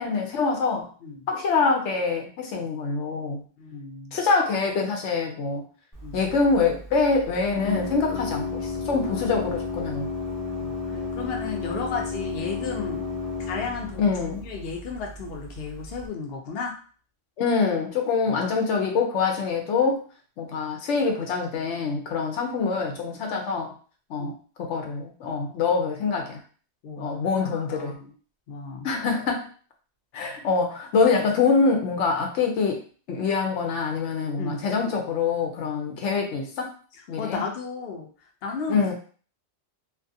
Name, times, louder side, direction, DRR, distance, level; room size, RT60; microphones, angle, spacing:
voice 1, 0.0-0.9 1.3-3.4 4.1-5.6 6.1-10.1 14.0-14.4 17.4-20.0 20.4-23.7 24.1-24.3 24.6-26.4 27.0-28.0 28.8-29.5 30.1-32.8 33.1-36.7 37.1-37.4 38.7-38.9, left 4 dB, 90° left, 2 dB, 1.0 m, -25 dB
voice 2, 3.6-4.2 6.0-6.2 10.6-13.1 13.5-16.7 18.3-18.4 24.2-24.3 26.8-28.1 28.5-28.9 34.4-34.7 35.6-35.7 37.2-38.1 38.4-38.9, left 5 dB, 65° left, 1 dB, 0.8 m, -34 dB
Organ, 5.9-16.1, left 4 dB, 20° left, 0.6 m, -33 dB
2.5 x 2.4 x 2.6 m, 0.41 s
omnidirectional pair, 1.2 m